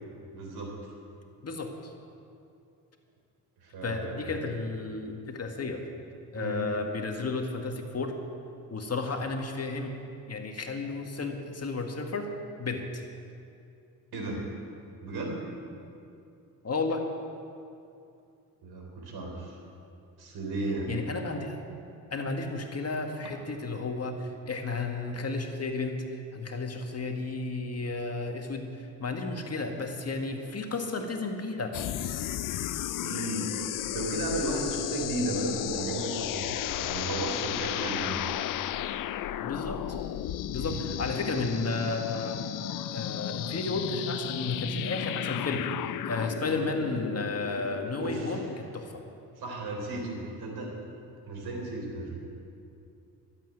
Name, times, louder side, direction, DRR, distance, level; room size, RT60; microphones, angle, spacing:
voice 1, 0.3-0.7 3.6-4.3 6.3-6.6 14.1-14.4 15.0-15.4 18.6-19.6 20.2-20.9 33.0-33.5 33.9-38.2 40.6-40.8 48.0-48.5 49.4-50.8 51.3-52.3, right 2 dB, 65° right, 1 dB, 4.0 m, -34 dB
voice 2, 1.4-1.9 3.8-5.9 6.3-8.2 8.7-10.0 10.3-12.3 12.6-13.0 16.6-17.1 20.9-21.6 22.1-26.0 26.3-31.8 39.4-40.0 40.5-42.5 42.9-49.0, left 3 dB, 35° left, 3 dB, 1.8 m, -33 dB
sound 1, 31.7-48.6, left 12 dB, 55° left, 0.6 m, -34 dB
13.0 x 8.4 x 9.4 m, 2.6 s
supercardioid pair, 65°, 40 cm